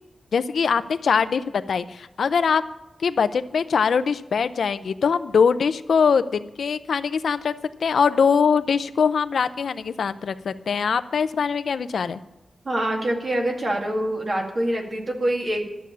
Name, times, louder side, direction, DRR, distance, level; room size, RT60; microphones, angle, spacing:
voice 1, 0.3-2.6 3.0-7.5 7.8-12.2, left 6 dB, 80° left, 12 dB, 0.5 m, -22 dB
voice 2, 12.6-15.7, right 1 dB, 40° right, 1 dB, 2.2 m, -25 dB
12.0 x 7.1 x 8.4 m, 0.99 s
wide cardioid pair, 155°, 0 cm